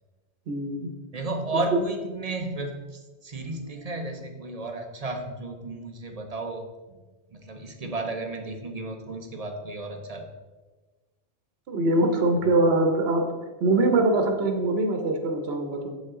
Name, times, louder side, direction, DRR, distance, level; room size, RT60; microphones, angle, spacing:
voice 1, 0.5-0.9 11.7-13.2 13.6-15.9, right 2 dB, 75° right, 4 dB, 1.1 m, -23 dB
voice 2, 1.1-6.6 6.9-7.0 7.3-10.2, right 2 dB, 45° right, 4 dB, 0.6 m, -33 dB
7.4 x 5.2 x 3.7 m, 1.3 s
omnidirectional pair, 1.0 m